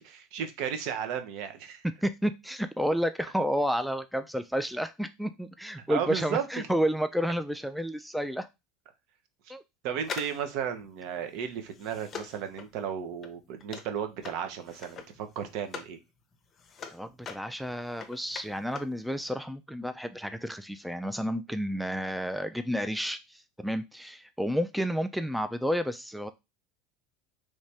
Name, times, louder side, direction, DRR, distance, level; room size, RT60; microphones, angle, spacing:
voice 1, 0.0-1.8 5.9-6.5 9.8-16.0, right 8 dB, 60° right, 0.7 m, -34 dB
voice 2, 2.0-8.5 9.5-9.6 16.9-26.3, equal, ahead, 0.3 m, -31 dB
sound 1, 10.0-16.0 16.3-19.0 19.3-19.4, left 6 dB, 35° left, 0.6 m, -43 dB
3.2 x 2.6 x 3.3 m
hypercardioid pair, 85°, 0 cm